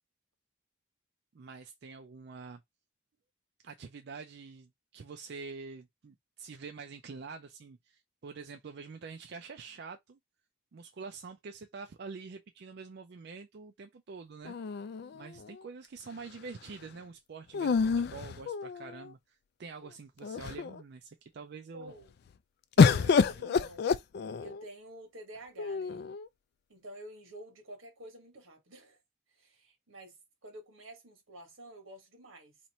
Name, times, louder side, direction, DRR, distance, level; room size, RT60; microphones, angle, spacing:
voice 1, 1.3-2.6 3.6-10.2 10.7-14.5 15.1-21.9, right 4 dB, 55° right, 0.4 m, -46 dB
sound 1, 14.4-15.6 17.5-19.1 19.8-19.9 20.2-20.8 22.8-24.6 25.6-26.3, left 5 dB, 50° left, 0.3 m, -27 dB
voice 2, 21.7-22.1 22.8-23.9 24.4-26.0 26.7-29.0 29.3-30.2 30.4-32.6, right 1 dB, 85° right, 1.5 m, -50 dB
2.9 x 2.5 x 4.2 m
head